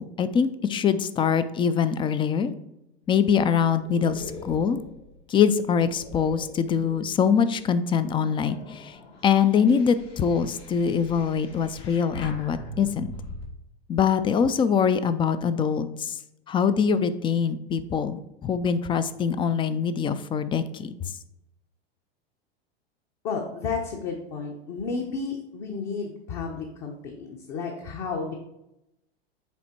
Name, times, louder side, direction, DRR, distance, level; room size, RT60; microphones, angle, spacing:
voice 1, 0.0-2.5 3.1-4.8 5.3-9.0 9.2-13.1 13.9-16.2 16.5-20.9, left 7 dB, 15° left, 13 dB, 0.3 m, -23 dB
sound 1, 3.0-7.3 7.8-13.4, left 2 dB, 70° left, 2.1 m, -42 dB
voice 2, 23.2-28.3, left 4 dB, 50° left, 0 dB, 1.1 m, -32 dB
7.2 x 4.3 x 4.3 m, 0.88 s
hypercardioid pair, 95°, 31 cm